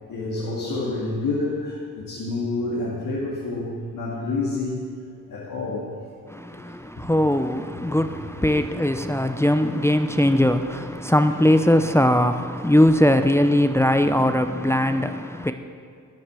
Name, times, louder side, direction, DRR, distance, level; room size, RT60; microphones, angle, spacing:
voice 1, 0.1-4.8 5.3-5.9 6.7-7.1 8.3-8.6, left 3 dB, 85° left, 2.2 m, -28 dB
voice 2, 6.3-15.5, left 1 dB, 10° left, 0.7 m, -20 dB
13.0 x 9.8 x 6.2 m
cardioid pair, 55°, 33 cm